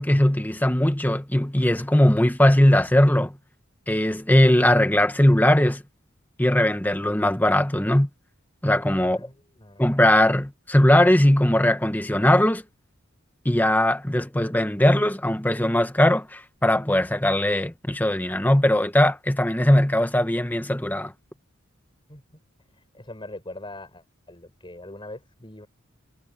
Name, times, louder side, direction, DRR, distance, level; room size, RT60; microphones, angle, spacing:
voice 1, 0.0-3.4 3.9-5.8 6.4-8.1 8.6-9.3 9.8-12.6 13.4-21.1, left 1 dB, 10° left, 1.1 m, -20 dB
voice 2, 9.0-9.9 22.1-22.2 22.9-25.7, left 1 dB, 25° left, 6.8 m, -42 dB
head